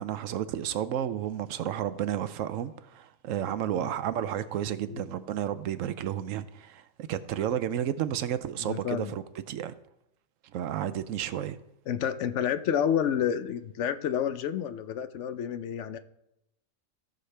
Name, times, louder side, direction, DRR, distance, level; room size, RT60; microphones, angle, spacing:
voice 1, 0.0-9.7 10.5-11.6, right 10 dB, 75° right, 0.9 m, -32 dB
voice 2, 8.6-9.1 11.9-16.0, left 9 dB, 65° left, 0.8 m, -29 dB
16.0 x 6.4 x 3.3 m
omnidirectional pair, 1.4 m